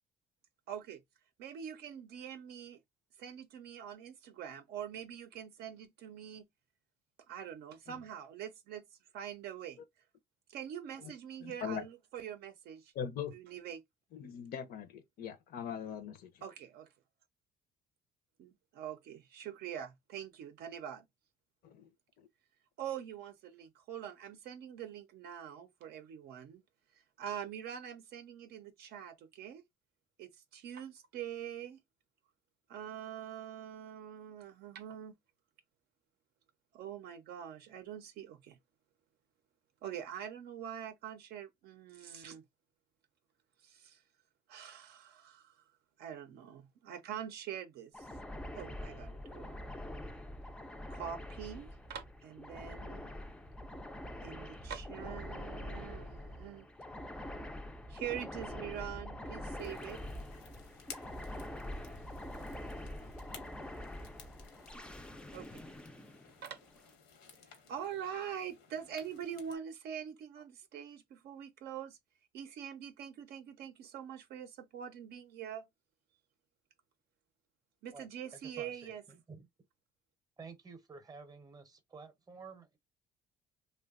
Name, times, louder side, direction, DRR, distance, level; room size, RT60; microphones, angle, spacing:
voice 1, 0.7-1.0 1.4-2.8 3.2-6.5 7.3-8.9 9.1-9.8 10.5-12.9 13.3-13.8 16.4-16.9 18.4-21.1 22.8-26.6 27.2-29.6 30.2-31.8 32.7-35.2 36.7-38.6 39.8-42.4 43.6-44.0 44.5-45.6 46.0-48.1 48.5-49.6 50.9-53.1 54.2-56.7 57.9-60.0 65.3-65.6 66.4-66.6 67.7-72.0 72.3-75.6 77.8-79.0, right 9 dB, 70° right, 0.5 m, -44 dB
voice 2, 11.4-11.8 12.9-13.3 14.1-16.3 21.6-21.9 22.2-22.3, left 8 dB, 60° left, 0.5 m, -41 dB
sound 1, 47.9-66.8, left 1 dB, 5° left, 0.3 m, -45 dB
sound 2, 59.6-69.6, left 7 dB, 90° left, 0.9 m, -56 dB
voice 3, 77.9-79.5 80.4-82.8, right 4 dB, 20° right, 0.7 m, -52 dB
2.7 x 2.2 x 2.3 m
cardioid pair, 110°, 17 cm